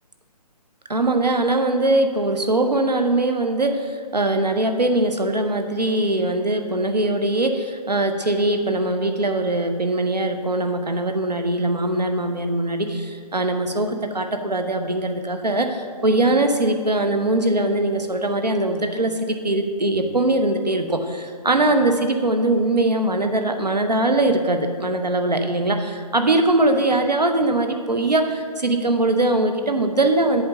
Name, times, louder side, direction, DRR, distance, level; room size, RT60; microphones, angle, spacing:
voice 1, 0.9-30.4, right 2 dB, 85° right, 6 dB, 0.8 m, -21 dB
7.9 x 3.7 x 6.4 m, 2.1 s
figure-of-eight pair, 140°, 21 cm